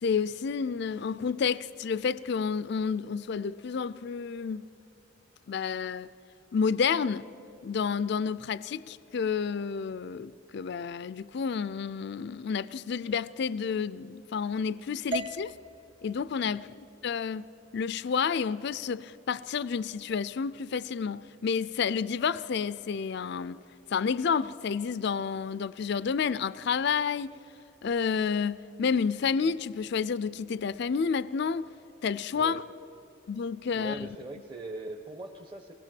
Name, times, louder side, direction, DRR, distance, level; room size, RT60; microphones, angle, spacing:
voice 1, 0.0-4.7 5.5-6.1 6.5-7.3 7.6-15.6 16.0-16.7 17.0-17.5 17.7-23.6 23.9-27.4 27.8-31.7 32.0-32.6 33.3-34.1, left 6 dB, 60° left, 0.4 m, -30 dB
sound 1, 15.1-19.2, right 2 dB, 65° right, 1.6 m, -42 dB
voice 2, 16.5-16.8 32.3-32.7 33.7-35.7, right 2 dB, 25° right, 0.9 m, -41 dB
24.0 x 19.5 x 7.6 m
head